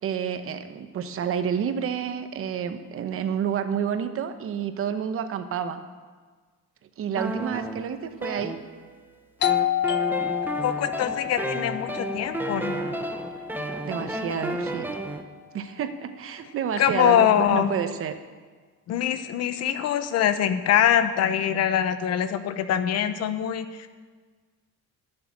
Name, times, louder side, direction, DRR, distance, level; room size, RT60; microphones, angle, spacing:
voice 1, 0.0-5.8 7.0-8.6 13.8-14.9 15.5-18.2, right 8 dB, 45° right, 9 dB, 0.9 m, -29 dB
sound 1, 7.2-9.0 9.4-15.2, right 1 dB, 5° right, 0.8 m, -32 dB
Doorbell, 9.4-14.8, left 12 dB, 35° left, 0.5 m, -30 dB
voice 2, 10.6-12.8 16.8-17.8 18.9-23.9, left 9 dB, 55° left, 10 dB, 0.9 m, -23 dB
11.5 x 6.8 x 9.6 m, 1.5 s
cardioid pair, 155°, 30 cm